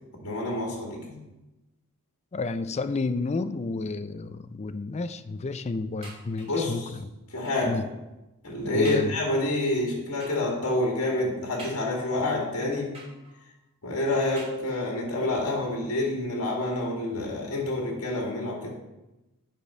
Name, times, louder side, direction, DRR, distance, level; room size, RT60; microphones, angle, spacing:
voice 1, 0.2-1.2 6.4-6.9 7.3-7.8 8.4-12.9 13.8-18.7, left 2 dB, 70° left, -1 dB, 1.9 m, -28 dB
voice 2, 2.3-7.0 7.6-7.9 8.7-9.1, left 3 dB, 30° left, 12 dB, 0.4 m, -31 dB
sound 1, 6.0-6.7 7.4-7.8 8.3-8.4 8.8-9.2 10.2-10.5 11.6-12.2 12.9-13.5 14.3-15.0 15.8-15.9 16.3-16.4, right 2 dB, 25° right, 3.0 m, -47 dB
9.2 x 5.0 x 5.5 m, 1.0 s
head